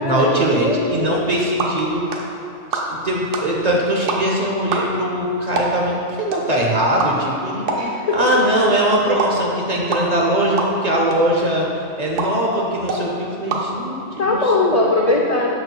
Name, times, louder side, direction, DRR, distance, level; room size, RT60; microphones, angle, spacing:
voice 1, 0.0-2.0 2.7-11.7 12.0-14.5, right 1 dB, 45° right, -2 dB, 0.6 m, -21 dB
voice 2, 0.6-1.2 7.7-8.3 14.2-15.6, left 2 dB, 75° left, -2 dB, 0.3 m, -20 dB
sound 1, 1.1-14.4, right 2 dB, 85° right, 1.0 m, -29 dB
6.7 x 6.5 x 2.2 m, 2.5 s
omnidirectional pair, 1.2 m